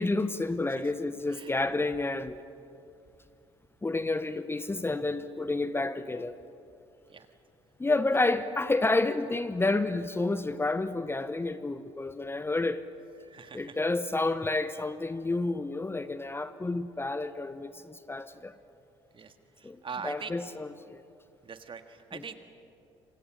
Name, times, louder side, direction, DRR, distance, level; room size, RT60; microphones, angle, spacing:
voice 1, 0.0-2.4 3.8-6.4 7.8-12.8 13.5-18.5 19.6-21.0 22.1-22.2, left 2 dB, 15° left, 13 dB, 0.9 m, -30 dB
voice 2, 13.2-13.8 19.1-20.3 21.4-22.4, right 6 dB, 35° right, 8 dB, 1.9 m, -42 dB
28.0 x 26.0 x 6.4 m, 2.7 s
figure-of-eight pair, 50°, 14 cm